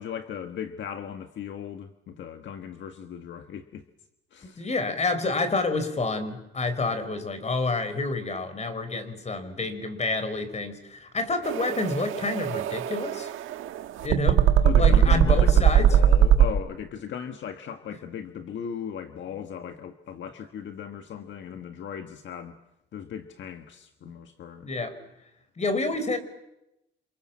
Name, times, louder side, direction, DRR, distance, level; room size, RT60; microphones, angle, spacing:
voice 1, 0.0-3.8 4.3-4.7 14.6-22.6 22.9-24.7, left 8 dB, 70° left, 1.6 m, -37 dB
voice 2, 4.4-13.3 14.0-14.5 14.8-15.9 21.5-21.6 24.6-24.9 25.6-26.2, left 3 dB, 35° left, 4.9 m, -28 dB
sound 1, 11.4-16.5, right 9 dB, 85° right, 1.6 m, -20 dB
28.5 x 27.5 x 7.4 m
cardioid pair, 90°, 20 cm